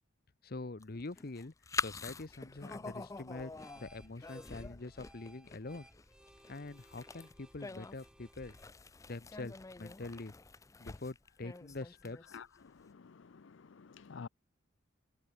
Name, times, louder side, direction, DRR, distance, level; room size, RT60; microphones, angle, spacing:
voice 1, 0.4-5.9 6.5-8.5 9.1-10.3 10.8-12.2, left 2 dB, 50° left, 0.9 m, -45 dB
sound 1, 0.8-12.6, left 4 dB, 15° left, 0.4 m, -45 dB
sound 2, 1.9-10.7, right 1 dB, 5° right, 1.3 m, -63 dB
voice 2, 12.3-14.3, left 5 dB, 65° left, 0.5 m, -51 dB
head